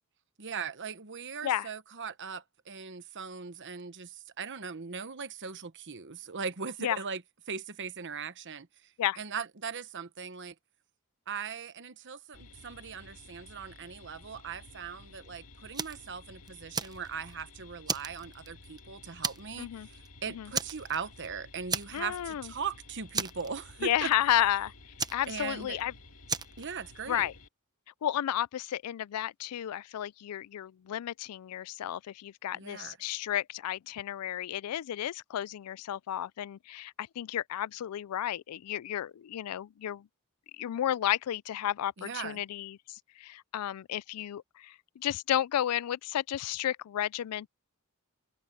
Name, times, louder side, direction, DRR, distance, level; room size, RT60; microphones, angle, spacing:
voice 1, 0.4-10.5 11.3-24.1 25.3-25.8 26.6-27.3 32.5-33.0 42.0-42.4, right 6 dB, 55° right, 1.1 m, -39 dB
sound 1, 12.3-27.5, left 2 dB, 70° left, 2.4 m, -53 dB
Fire, 15.7-16.1 16.5-17.4 17.9-18.8 19.2-19.6 19.9-20.1 20.5-21.3 21.7-22.3 22.5-22.7 23.1-23.9 25.0-25.8 26.3-26.6, right 5 dB, 20° right, 0.8 m, -34 dB
voice 2, 19.6-19.9 20.3-20.5 21.9-22.5 23.8-24.7 25.1-25.9 27.1-27.3 28.0-40.1 40.5-47.5, left 11 dB, 85° left, 0.3 m, -32 dB
head